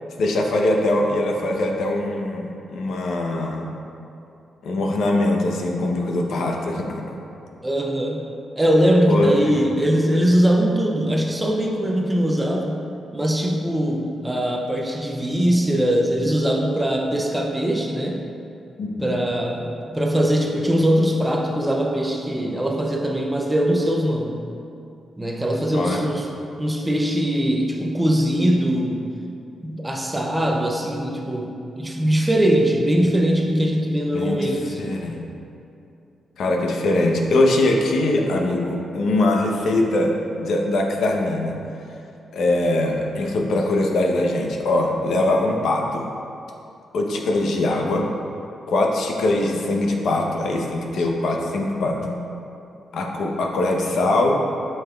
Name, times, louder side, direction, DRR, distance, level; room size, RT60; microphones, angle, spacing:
voice 1, 0.2-3.7 4.6-7.0 9.1-9.5 18.8-19.1 25.7-26.0 34.1-34.5 34.8-35.2 36.4-41.6 42.3-46.1 46.9-48.1 48.7-52.2 52.9-54.4, left 2 dB, 75° left, 1 dB, 0.7 m, -22 dB
voice 2, 7.6-8.3 8.6-12.8 13.1-18.2 19.0-24.4 25.2-26.3 26.6-29.1 29.6-34.9, equal, 10° right, 1 dB, 0.5 m, -21 dB
8.4 x 5.7 x 2.3 m, 2.7 s
wide cardioid pair, 150°, 0 cm